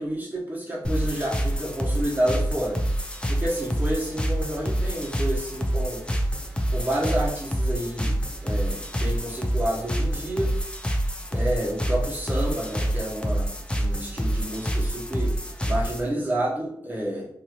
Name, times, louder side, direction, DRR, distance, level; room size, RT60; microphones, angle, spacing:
voice 1, 0.0-2.8 3.3-6.1 6.7-10.5 11.3-13.5 13.8-15.3 15.6-17.3, right 1 dB, 25° right, -5 dB, 1.1 m, -29 dB
sound 1, 0.8-16.1, equal, 15° left, 0.4 m, -27 dB
3.0 x 2.7 x 2.5 m, 0.68 s
wide cardioid pair, 95°, 8 cm